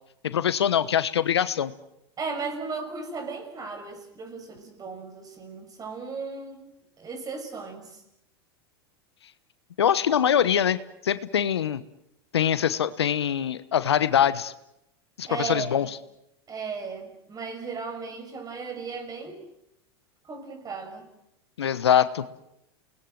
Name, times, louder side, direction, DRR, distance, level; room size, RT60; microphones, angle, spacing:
voice 1, 0.2-1.7 9.8-11.8 12.3-14.5 15.2-15.9 21.6-22.2, left 9 dB, 90° left, 14 dB, 1.2 m, -23 dB
voice 2, 2.2-6.7 7.0-7.9 15.3-16.0 16.5-19.4 20.3-21.1, right 4 dB, 30° right, 7 dB, 6.1 m, -36 dB
29.0 x 20.0 x 7.8 m, 0.84 s
hypercardioid pair, 105°, 13 cm